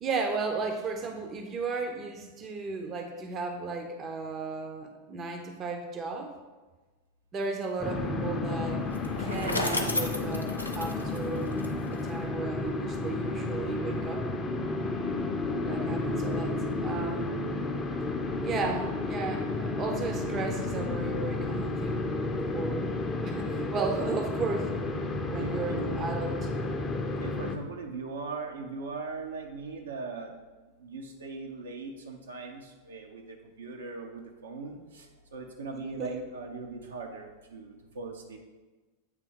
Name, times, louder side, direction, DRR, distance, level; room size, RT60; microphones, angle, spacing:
voice 1, 0.0-6.3 7.3-8.8 9.2-14.2 15.7-16.6 16.8-17.4 18.4-23.0 23.2-24.7 25.2-26.5 36.0-36.2, right 4 dB, 30° right, 4 dB, 0.7 m, -35 dB
sound 1, 7.8-27.5, left 2 dB, 15° left, 0.6 m, -32 dB
Bicycle, 8.9-12.1, left 1 dB, 85° left, 0.6 m, -33 dB
voice 2, 15.5-15.8 25.3-25.9 27.2-30.3 30.8-38.4, right 3 dB, 65° right, 2 dB, 0.8 m, -40 dB
8.0 x 3.4 x 4.6 m, 1.2 s
figure-of-eight pair, 90°, 0 cm